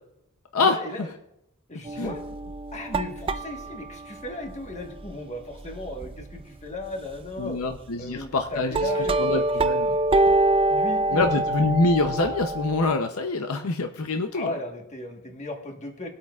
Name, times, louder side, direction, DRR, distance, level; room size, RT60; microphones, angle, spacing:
voice 1, 0.6-1.1 1.7-2.2 2.7-7.6 8.0-9.6 10.7-11.6 14.3-16.1, left 2 dB, 30° left, 3 dB, 1.4 m, -36 dB
sound 1, 1.9-6.4 6.8-6.9 7.3-7.9 8.4-12.9, right 2 dB, 25° right, 0.4 m, -26 dB
voice 2, 7.4-8.8 9.2-10.0 11.1-14.5, left 3 dB, 70° left, 6 dB, 0.7 m, -25 dB
19.5 x 8.6 x 2.4 m, 0.84 s
head